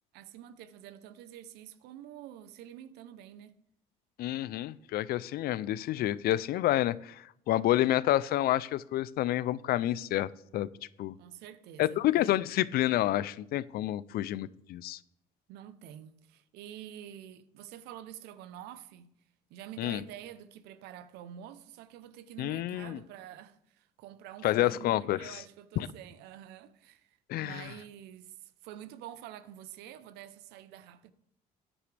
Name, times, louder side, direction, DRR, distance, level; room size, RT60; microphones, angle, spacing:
voice 1, 0.1-3.6 11.1-12.0 15.5-19.1 19.5-31.1, right 11 dB, 80° right, 0.8 m, -48 dB
voice 2, 4.2-10.7 11.0-11.1 11.8-15.0 19.8-20.0 22.4-23.0 24.4-25.4 25.8-25.9 27.3-27.7, left 14 dB, 65° left, 0.5 m, -29 dB
13.5 x 9.9 x 3.4 m
supercardioid pair, 80°, 17 cm